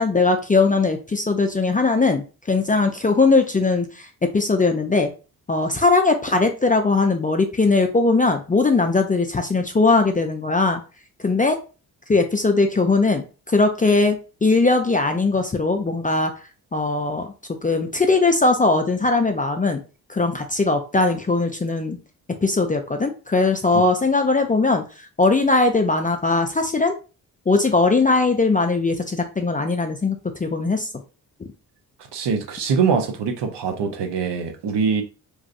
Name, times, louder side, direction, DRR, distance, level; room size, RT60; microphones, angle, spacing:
voice 1, 0.0-4.1 4.3-5.1 5.5-10.8 11.2-11.6 12.1-16.3 16.7-17.3 17.6-19.8 20.1-22.0 22.4-24.8 25.2-26.9 27.5-30.9, left 3 dB, 20° left, 0.4 m, -20 dB
voice 2, 32.1-35.0, right 5 dB, 60° right, 0.8 m, -23 dB
3.1 x 2.5 x 2.5 m
hypercardioid pair, 40°, 48 cm